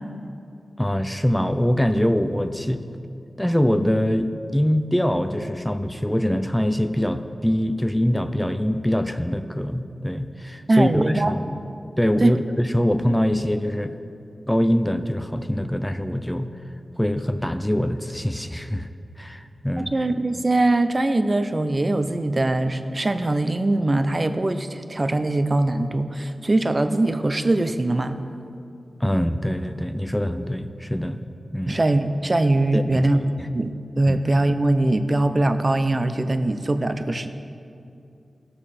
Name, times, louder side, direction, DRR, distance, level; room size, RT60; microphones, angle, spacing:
voice 1, 0.8-2.8 3.4-11.4 12.0-13.9 14.5-16.5 17.0-18.9 19.2-19.9 29.0-31.2 31.5-31.8 32.7-33.1 33.4-33.5 34.1-34.2, equal, 5° left, 9 dB, 0.5 m, -23 dB
voice 2, 10.7-11.3 12.2-12.4 19.8-28.2 31.7-33.2 33.5-37.3, right 2 dB, 35° right, 9 dB, 0.6 m, -22 dB
16.5 x 6.9 x 4.3 m, 2.6 s
wide cardioid pair, 85°, 0 cm